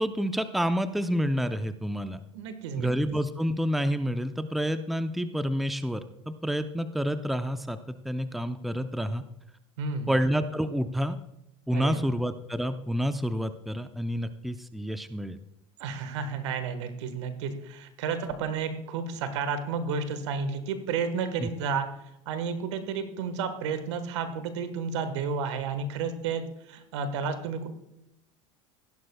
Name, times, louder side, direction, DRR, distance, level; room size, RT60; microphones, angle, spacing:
voice 1, 0.0-2.2 2.8-9.2 10.1-11.2 11.7-15.4 21.4-21.5, equal, ahead, 10 dB, 0.6 m, -29 dB
voice 2, 2.3-2.9 9.8-10.2 11.7-12.1 15.8-21.9 22.3-27.7, right 5 dB, 80° right, 10 dB, 1.4 m, -31 dB
16.0 x 11.0 x 2.3 m, 0.83 s
hypercardioid pair, 90°, 15 cm